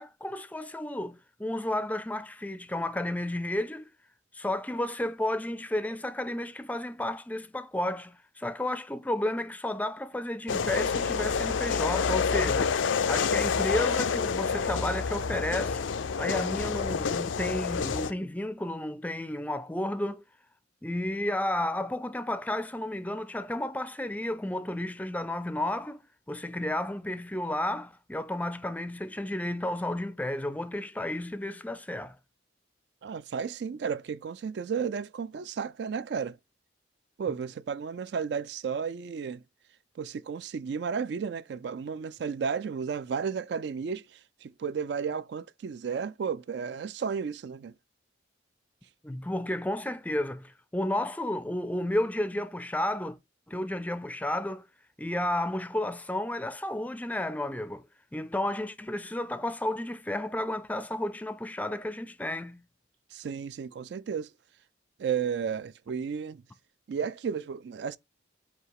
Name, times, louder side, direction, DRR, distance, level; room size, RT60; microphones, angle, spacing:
voice 1, 0.0-3.9 4.3-12.7 13.1-15.8 16.2-20.2 20.8-32.2 49.0-53.2 53.5-54.6 55.0-57.8 58.1-62.6, left 1 dB, 10° left, 0.4 m, -32 dB
sound 1, 10.5-18.1, left 5 dB, 80° left, 0.5 m, -28 dB
voice 2, 33.0-36.4 37.2-39.4 40.0-47.7 63.1-64.3 65.0-66.4 66.9-68.0, right 6 dB, 60° right, 0.3 m, -33 dB
7.8 x 2.8 x 4.7 m
head